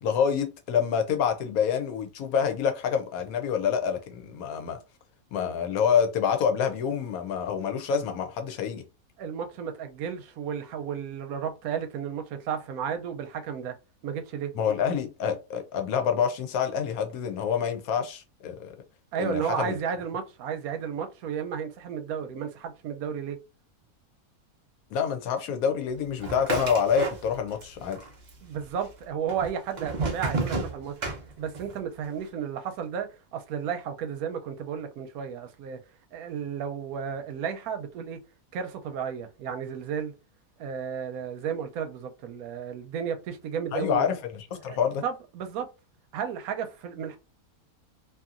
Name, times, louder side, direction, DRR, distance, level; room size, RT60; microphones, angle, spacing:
voice 1, 0.0-4.8 5.3-8.8 14.6-18.7 19.2-19.8 24.9-28.0 43.7-45.0, left 7 dB, 80° left, 1.1 m, -27 dB
voice 2, 9.2-13.7 14.0-14.5 19.1-23.4 28.4-30.9 31.4-35.8 36.1-38.2 38.5-40.1 40.6-44.1 44.6-45.7 46.1-47.2, right 7 dB, 85° right, 1.0 m, -33 dB
sound 1, 26.2-27.7 27.9-28.7 29.3-31.8, right 3 dB, 45° right, 0.6 m, -31 dB
2.7 x 2.6 x 2.4 m
omnidirectional pair, 1.5 m